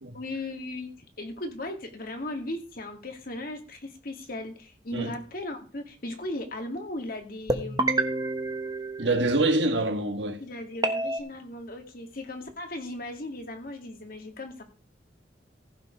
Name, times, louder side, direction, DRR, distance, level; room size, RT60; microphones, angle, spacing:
voice 1, 0.1-0.9 1.2-7.9 10.4-14.6, left 1 dB, 50° left, 2.1 m, -37 dB
sound 1, 7.5-9.6 10.8-11.2, right 2 dB, 20° right, 1.2 m, -28 dB
voice 2, 9.0-10.4, right 2 dB, 75° right, 1.6 m, -25 dB
15.5 x 5.2 x 5.2 m
head